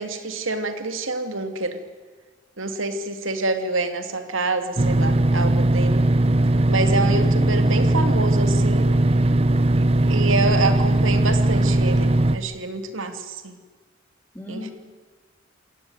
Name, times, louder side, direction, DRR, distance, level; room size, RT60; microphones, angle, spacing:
voice 1, 0.0-1.8 2.6-6.0 6.7-8.9 9.7-13.5 14.5-14.7, right 2 dB, 90° right, 8 dB, 2.6 m, -27 dB
sound 1, 4.8-12.4, right 1 dB, 30° right, 0.7 m, -19 dB
voice 2, 7.1-7.7 14.3-14.7, equal, 10° left, -1 dB, 3.6 m, -33 dB
27.5 x 16.0 x 9.7 m, 1.5 s
head